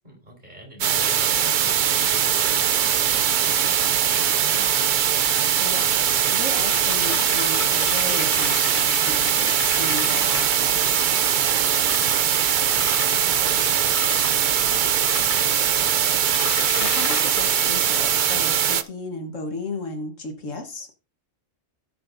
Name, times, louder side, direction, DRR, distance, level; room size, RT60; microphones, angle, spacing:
voice 1, 0.0-4.8 11.2-12.3 12.7-15.7, equal, 35° right, 4.5 m, -42 dB
sound 1, 0.8-18.8, right 9 dB, 60° right, 0.5 m, -21 dB
voice 2, 5.6-11.1 16.8-20.9, left 3 dB, 70° left, 1.7 m, -35 dB
sound 2, 6.7-11.3 11.8-12.2 12.8-13.5 14.0-14.3 15.1-15.8 16.3-18.6, left 5 dB, 45° left, 0.9 m, -34 dB
17.0 x 6.8 x 2.6 m
omnidirectional pair, 1.4 m